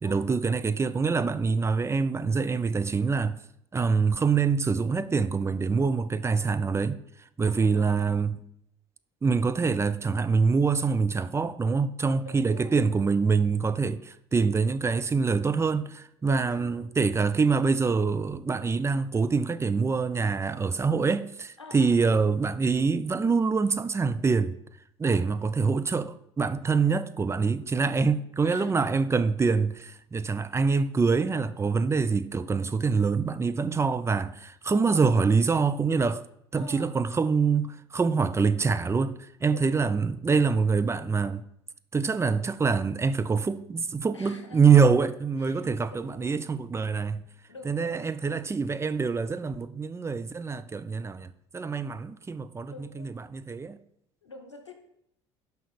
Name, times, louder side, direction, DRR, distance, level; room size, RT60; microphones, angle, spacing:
voice 1, 0.0-3.4 3.7-7.0 7.4-8.4 9.2-24.6 25.0-36.2 36.5-41.4 41.9-47.2 47.7-53.8, right 5 dB, 20° right, 0.5 m, -25 dB
voice 2, 7.4-8.2 12.2-12.8 16.2-16.9 21.6-22.2 25.0-25.3 28.4-28.9 34.9-35.1 36.5-37.2 39.5-40.0 44.1-44.9 45.4-46.5 47.5-48.1 52.7-53.1 54.2-54.7, left 3 dB, 90° left, 0.9 m, -46 dB
6.3 x 5.4 x 6.7 m
figure-of-eight pair, 60°, 14 cm